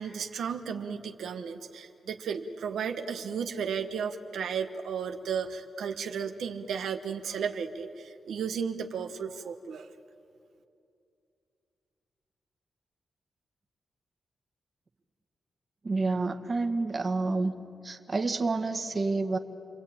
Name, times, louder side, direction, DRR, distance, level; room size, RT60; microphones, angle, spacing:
voice 1, 0.0-9.9, right 6 dB, 85° right, 5 dB, 1.2 m, -34 dB
voice 2, 15.8-17.5 17.8-19.4, right 3 dB, 35° right, 6 dB, 1.6 m, -29 dB
29.5 x 22.5 x 8.9 m, 2.6 s
cardioid pair, 85°, 0 cm